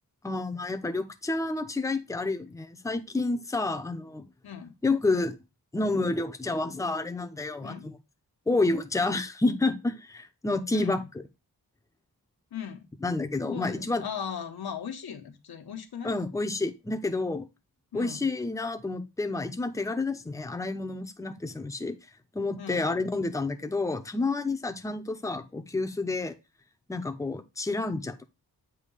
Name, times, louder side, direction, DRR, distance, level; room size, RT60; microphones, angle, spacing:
voice 1, 0.2-4.2 4.8-5.4 5.7-8.0 8.5-11.0 13.0-14.0 16.0-17.5 17.9-22.0 22.3-26.3 26.9-28.2, left 3 dB, 10° left, 0.6 m, -29 dB
voice 2, 4.4-4.7 7.6-7.9 10.7-11.1 12.5-12.9 13.4-16.1 17.9-18.3 22.6-22.9, left 8 dB, 85° left, 1.1 m, -38 dB
8.2 x 2.8 x 5.4 m
wide cardioid pair, 150°, 37 cm